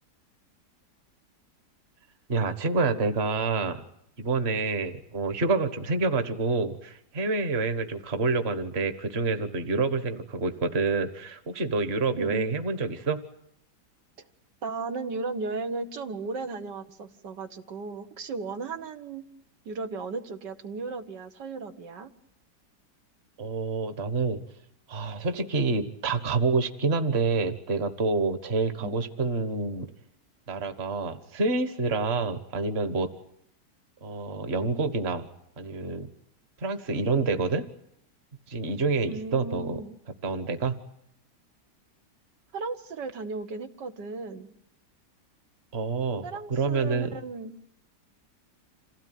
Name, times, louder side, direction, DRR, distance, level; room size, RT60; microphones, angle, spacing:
voice 1, 2.3-3.8 4.2-13.2 23.4-24.4 24.9-29.9 30.5-33.1 34.0-35.3 35.6-36.1 36.6-37.6 38.5-39.8 40.2-40.8 45.7-47.1, right 3 dB, 40° right, 9 dB, 1.6 m, -27 dB
voice 2, 12.1-12.5 14.6-19.3 19.7-22.1 28.8-29.0 39.1-40.0 42.5-44.6 46.2-47.5, right 4 dB, 80° right, 6 dB, 2.0 m, -35 dB
27.0 x 17.0 x 9.3 m, 0.77 s
omnidirectional pair, 1.9 m